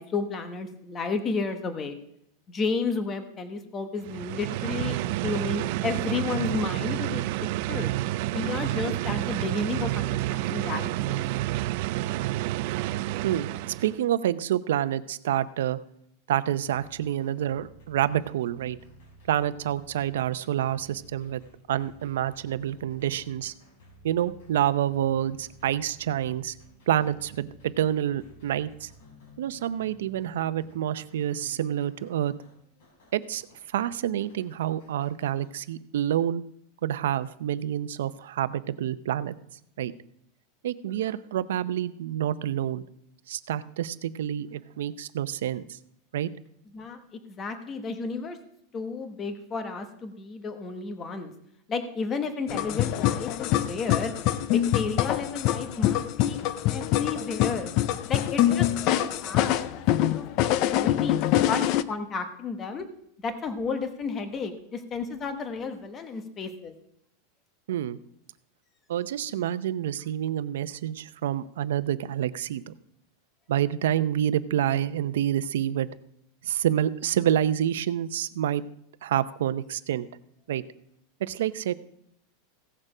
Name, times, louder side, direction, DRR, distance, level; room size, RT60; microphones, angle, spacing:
voice 1, 0.0-2.0 2.5-7.2 7.7-7.9 8.3-11.2 46.7-47.0 47.3-48.4 48.7-51.3 51.7-54.1 54.5-56.4 56.7-57.7 58.1-61.6 61.9-62.9 63.2-66.7, left 4 dB, 20° left, 8 dB, 1.0 m, -32 dB
sound 1, 4.0-14.0, right 16 dB, 50° right, 0.4 m, -29 dB
voice 2, 13.2-15.8 16.3-18.8 19.3-21.4 21.7-23.5 24.0-26.6 26.9-28.9 29.4-32.3 33.1-33.4 33.7-36.4 36.8-39.3 39.8-39.9 40.6-42.8 43.3-45.8 46.1-46.3 67.7-68.0 68.9-72.7 73.5-75.9 76.4-78.6 79.0-80.1 80.5-80.6 81.2-81.7, right 11 dB, 90° right, 15 dB, 0.6 m, -28 dB
sound 2, 16.6-35.6, equal, 70° left, 4.5 m, -54 dB
sound 3, 52.5-61.8, left 13 dB, 40° left, 0.4 m, -25 dB
16.0 x 6.7 x 4.9 m, 0.75 s
supercardioid pair, 170°, 0 cm